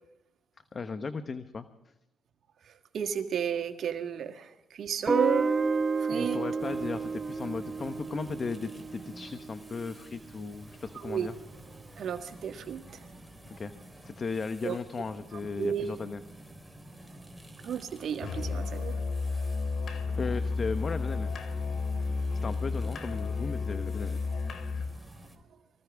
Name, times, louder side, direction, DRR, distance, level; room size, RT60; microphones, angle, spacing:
voice 1, 0.7-1.7 6.1-11.3 13.6-13.7 14.0-16.2 20.1-21.3 22.4-24.2, left 4 dB, 40° left, 10 dB, 1.0 m, -36 dB
voice 2, 2.7-5.6 6.0-6.4 11.0-11.3 12.0-13.0 14.6-14.8 15.6-15.9 17.6-19.0, right 8 dB, 60° right, 6 dB, 1.6 m, -32 dB
Guitar, 5.1-9.9, right 4 dB, 30° right, 0.7 m, -31 dB
sound 1, 6.6-25.4, right 1 dB, ahead, 3.9 m, -51 dB
Musical instrument, 18.2-25.0, left 4 dB, 60° left, 2.7 m, -32 dB
24.5 x 15.5 x 3.5 m, 0.90 s
cardioid pair, 90°, 0 cm